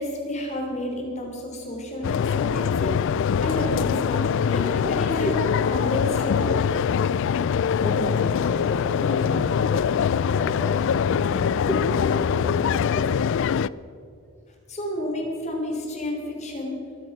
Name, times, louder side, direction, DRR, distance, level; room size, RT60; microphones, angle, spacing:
voice 1, 0.0-6.6 14.7-16.8, left 1 dB, 30° left, 1 dB, 3.3 m, -31 dB
sound 1, 2.0-13.7, left 7 dB, 55° left, 0.3 m, -23 dB
voice 2, 7.8-13.1, equal, 10° left, -2 dB, 1.5 m, -34 dB
23.5 x 8.5 x 6.1 m, 2.4 s
head